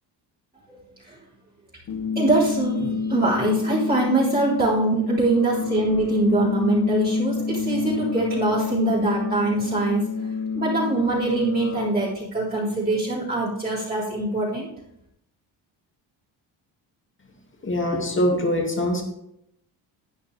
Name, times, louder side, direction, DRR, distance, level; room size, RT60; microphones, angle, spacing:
sound 1, 1.9-11.9, left 5 dB, 45° left, 0.9 m, -28 dB
voice 1, 2.2-10.0 10.5-14.7, right 2 dB, 20° right, -9 dB, 3.7 m, -23 dB
voice 2, 17.6-19.0, left 1 dB, 25° left, 2 dB, 2.3 m, -23 dB
11.5 x 8.4 x 3.4 m, 0.78 s
cardioid pair, 110°, 43 cm